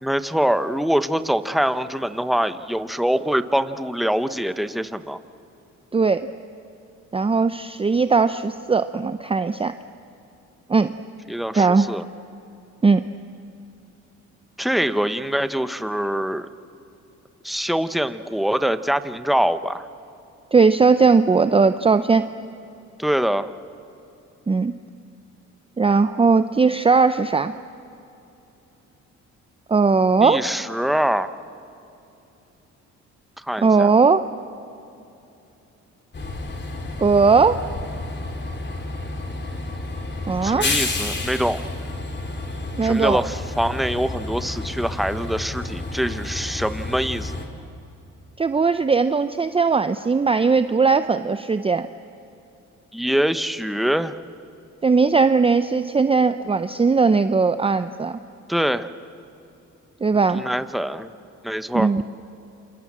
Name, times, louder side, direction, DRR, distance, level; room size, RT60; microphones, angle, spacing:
voice 1, 0.0-5.2 11.3-12.0 14.6-16.5 17.4-19.8 23.0-23.5 30.2-31.3 33.5-33.9 40.4-41.6 42.8-47.3 52.9-54.1 58.5-58.9 60.3-61.1 61.4-61.9, equal, ahead, 11 dB, 1.0 m, -24 dB
voice 2, 5.9-6.3 7.1-9.7 10.7-10.9 11.5-11.9 12.8-13.0 20.5-22.3 24.5-24.7 25.8-27.5 29.7-30.4 33.6-34.2 37.0-37.6 40.3-40.7 42.8-43.2 48.4-51.9 54.8-58.2 60.0-60.4 61.7-62.0, right 4 dB, 20° right, 11 dB, 0.6 m, -18 dB
Train, 36.1-47.5, left 2 dB, 35° left, 3.7 m, -30 dB
28.0 x 27.0 x 7.5 m, 2.9 s
cardioid pair, 90°, 30 cm